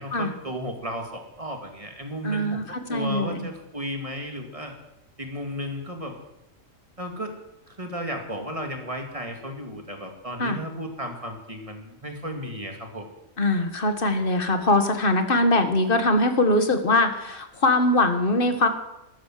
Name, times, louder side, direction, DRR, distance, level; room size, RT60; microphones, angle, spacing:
voice 1, 0.0-4.7 5.2-6.2 7.0-7.4 7.7-13.1, equal, 25° right, 3 dB, 2.3 m, -34 dB
voice 2, 2.2-3.5 10.4-10.6 13.4-18.7, left 2 dB, 40° left, 8 dB, 1.7 m, -22 dB
13.0 x 12.5 x 7.6 m, 0.91 s
omnidirectional pair, 1.4 m